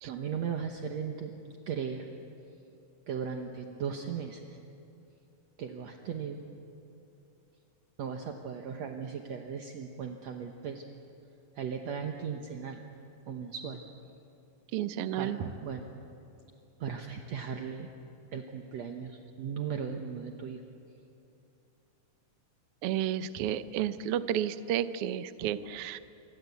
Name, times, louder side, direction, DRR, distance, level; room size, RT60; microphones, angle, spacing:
voice 1, 0.0-1.3 1.7-2.1 3.1-4.6 5.6-6.4 8.0-10.8 11.5-12.8 13.3-13.8 15.2-15.8 16.8-17.9 18.3-20.6 23.4-23.5 25.4-25.5, right 7 dB, 65° right, 4 dB, 2.2 m, -37 dB
voice 2, 14.7-15.4 22.8-26.0, right 11 dB, 80° right, 12 dB, 1.3 m, -31 dB
27.0 x 25.0 x 8.3 m, 2.7 s
omnidirectional pair, 3.7 m